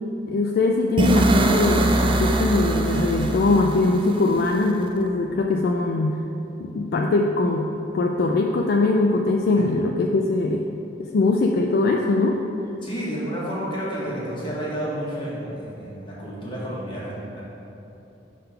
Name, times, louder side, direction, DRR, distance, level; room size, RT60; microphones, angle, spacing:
voice 1, 0.3-6.2 6.6-10.6 11.0-12.4, left 3 dB, 55° left, 1 dB, 0.3 m, -22 dB
sound 1, 1.0-4.9, right 2 dB, 30° right, 0.4 m, -22 dB
voice 2, 12.8-17.4, equal, 25° left, -7 dB, 1.5 m, -30 dB
5.6 x 3.7 x 5.6 m, 3.0 s
head